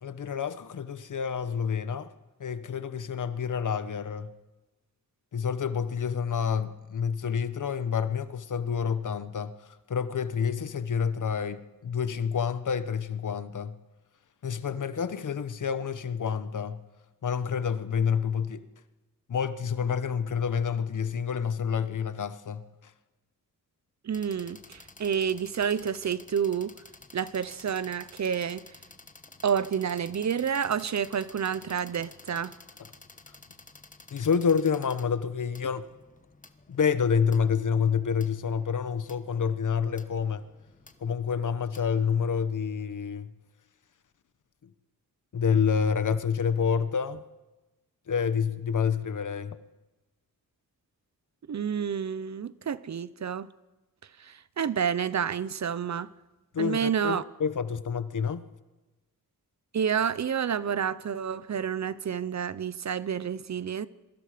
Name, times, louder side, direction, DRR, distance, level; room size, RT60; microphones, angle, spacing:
voice 1, 0.0-2.1 2.4-4.3 5.3-13.8 14.4-16.8 17.2-18.7 19.3-22.9 34.1-35.9 36.7-40.5 41.0-43.3 45.3-47.2 48.1-49.6 56.5-58.5, left 6 dB, 60° left, 1.1 m, -28 dB
voice 2, 24.0-26.7 27.1-28.6 29.4-32.5 51.5-53.5 54.2-56.1 56.6-57.2 59.7-63.9, right 7 dB, 55° right, 0.7 m, -29 dB
sound 1, 24.1-42.5, left 3 dB, 25° left, 1.2 m, -53 dB
27.5 x 23.0 x 5.1 m
wide cardioid pair, 115°, 34 cm